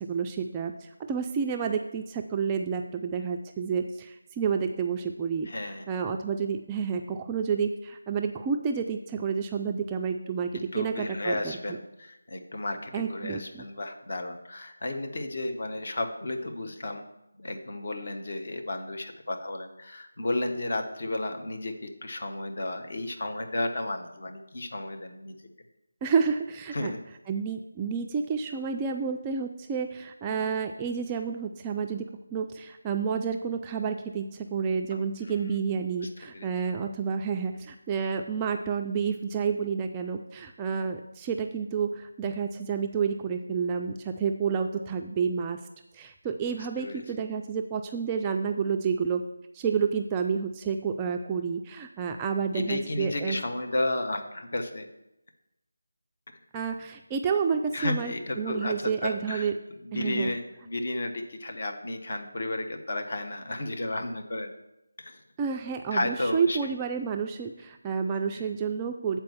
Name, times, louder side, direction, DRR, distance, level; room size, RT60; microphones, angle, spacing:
voice 1, 0.0-5.5 5.9-11.4 12.9-13.6 26.0-26.9 27.3-45.6 45.9-49.2 49.5-53.4 56.5-59.5 59.9-60.3 65.4-69.2, right 6 dB, 15° right, 4 dB, 0.3 m, -30 dB
voice 2, 5.4-5.9 10.7-17.0 17.4-25.4 26.7-27.0 36.3-36.5 46.5-47.0 52.5-54.9 57.7-59.5 59.8-64.5 65.0-65.2 65.9-66.7 68.3-68.5, left 2 dB, 50° left, 5 dB, 1.1 m, -33 dB
7.6 x 4.5 x 7.0 m, 0.90 s
figure-of-eight pair, 170°, 0 cm